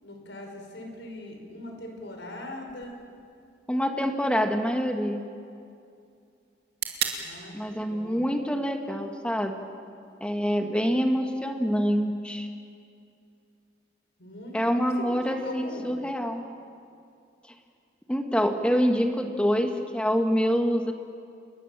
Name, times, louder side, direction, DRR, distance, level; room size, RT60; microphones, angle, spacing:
voice 1, 0.0-3.0 7.2-8.2 14.2-15.9, left 1 dB, 70° left, 2 dB, 5.7 m, -41 dB
sound 1, 2.7-10.7, right 8 dB, 60° right, 2.6 m, -41 dB
voice 2, 3.7-5.2 7.5-9.5 10.2-12.5 14.5-16.4 18.1-20.9, equal, 5° left, 4 dB, 1.7 m, -26 dB
28.5 x 21.5 x 7.5 m, 2.5 s
head